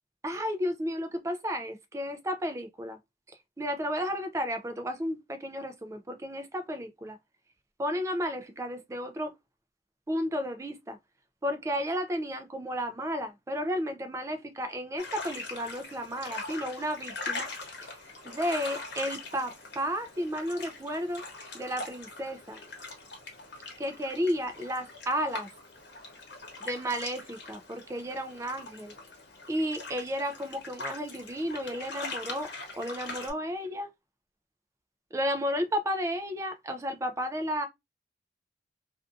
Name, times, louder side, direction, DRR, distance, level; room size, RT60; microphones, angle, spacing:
voice 1, 0.2-3.0 3.6-7.2 7.8-9.3 10.1-11.0 11.4-17.5 18.2-21.2 21.5-22.6 23.8-25.5 26.6-28.9 29.5-32.5 32.8-33.9 35.1-37.7, equal, 15° right, 0.3 m, -32 dB
sound 1, 15.0-33.3, left 3 dB, 85° left, 1.0 m, -42 dB
2.5 x 2.3 x 2.4 m
head